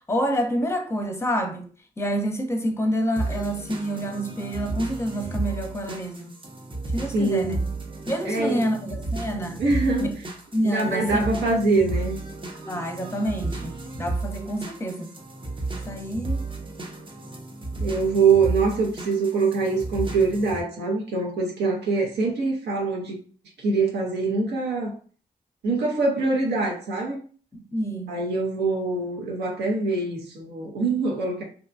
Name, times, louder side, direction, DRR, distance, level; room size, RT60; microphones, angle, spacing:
voice 1, 0.1-1.7 2.0-6.3 6.9-7.6 8.1-9.6 10.5-11.2 12.7-15.1 15.9-16.5 27.5-28.2, equal, 15° left, 0.7 m, -28 dB
sound 1, 3.2-20.6, right 3 dB, 30° right, 0.6 m, -33 dB
voice 2, 7.1-7.6 8.2-8.6 9.6-10.1 10.6-12.2 17.8-23.2 23.6-24.9 25.6-27.2 28.1-31.4, right 3 dB, 85° right, 0.7 m, -24 dB
2.7 x 2.2 x 2.4 m
supercardioid pair, 45°, 17 cm